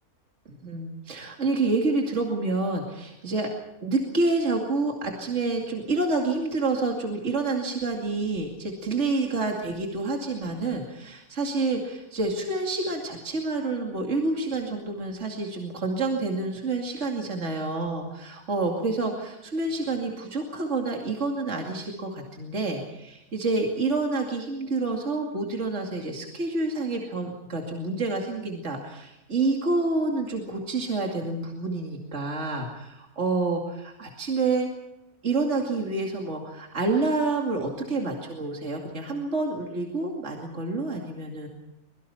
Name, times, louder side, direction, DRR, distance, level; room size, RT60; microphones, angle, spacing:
voice 1, 0.5-3.5 3.8-34.7 35.2-41.5, right 3 dB, 50° right, 1 dB, 2.8 m, -28 dB
24.5 x 22.0 x 5.7 m, 0.89 s
omnidirectional pair, 1.6 m